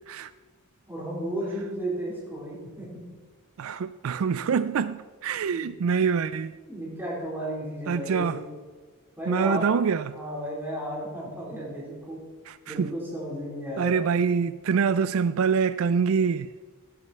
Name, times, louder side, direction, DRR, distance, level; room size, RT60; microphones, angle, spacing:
voice 1, 0.9-3.0 4.3-4.5 5.5-5.6 6.7-8.4 9.2-9.7 10.1-12.2 12.7-14.1, right 1 dB, 10° right, 4.5 m, -33 dB
voice 2, 3.6-6.6 7.9-8.4 9.3-10.1 12.5-12.9 13.8-16.5, right 6 dB, 70° right, 0.4 m, -25 dB
18.0 x 9.4 x 4.5 m
head